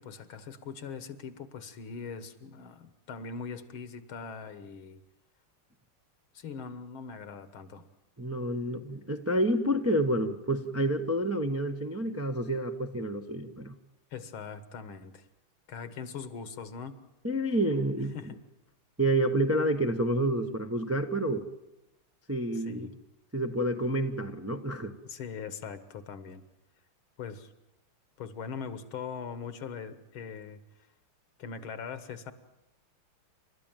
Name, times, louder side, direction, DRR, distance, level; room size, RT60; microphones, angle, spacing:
voice 1, 0.0-5.0 6.3-7.9 14.1-15.3 15.7-17.0 18.1-18.4 22.5-22.9 25.0-26.4 27.2-27.5 28.2-30.6 31.4-32.3, left 6 dB, 70° left, 13 dB, 2.1 m, -41 dB
voice 2, 8.2-13.8 17.2-18.1 19.0-21.4 22.3-22.9 23.3-24.9, right 1 dB, 15° right, 5 dB, 0.6 m, -29 dB
29.0 x 13.0 x 9.0 m, 0.95 s
omnidirectional pair, 2.4 m